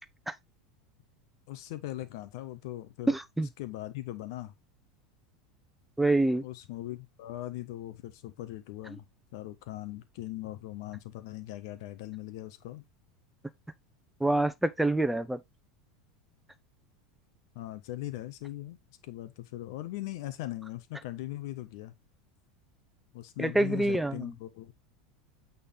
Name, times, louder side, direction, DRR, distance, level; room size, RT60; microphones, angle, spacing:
voice 1, 1.5-3.2 3.6-4.5 6.4-9.1 9.3-12.8 17.5-18.8 19.0-21.9 23.1-24.7, left 15 dB, 65° left, 1.2 m, -40 dB
voice 2, 3.1-3.5 6.0-6.4 14.2-15.4 23.4-24.3, right 2 dB, 5° right, 1.0 m, -26 dB
8.4 x 4.2 x 3.7 m
hypercardioid pair, 85°, 3 cm